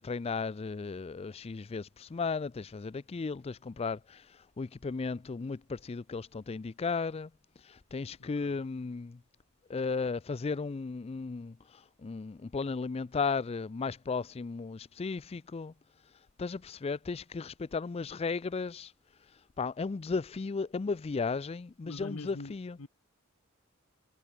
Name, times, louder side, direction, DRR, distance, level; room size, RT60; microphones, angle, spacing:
voice 1, 0.0-7.3 7.6-9.2 9.7-15.7 16.4-18.9 19.6-22.8, left 4 dB, 30° left, 0.4 m, -35 dB
voice 2, 8.2-8.6 21.9-22.9, left 2 dB, 85° left, 1.3 m, -44 dB
head